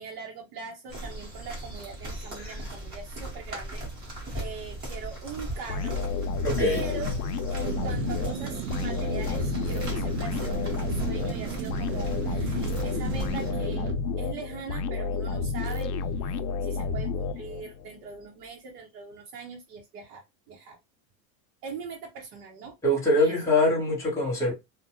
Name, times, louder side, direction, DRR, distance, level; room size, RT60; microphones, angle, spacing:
voice 1, 0.0-6.0 6.6-7.1 7.5-15.9 16.2-20.8 21.6-22.7 23.2-23.5, right 5 dB, 65° right, 0.9 m, -41 dB
sound 1, 0.9-13.5, right 1 dB, 20° right, 0.9 m, -38 dB
sound 2, 5.7-17.9, left 4 dB, 85° left, 0.5 m, -30 dB
voice 2, 6.4-6.8 22.8-24.5, left 1 dB, 5° left, 0.5 m, -24 dB
sound 3, 7.6-13.9, right 10 dB, 90° right, 0.7 m, -35 dB
2.5 x 2.1 x 2.8 m
supercardioid pair, 165°, 49 cm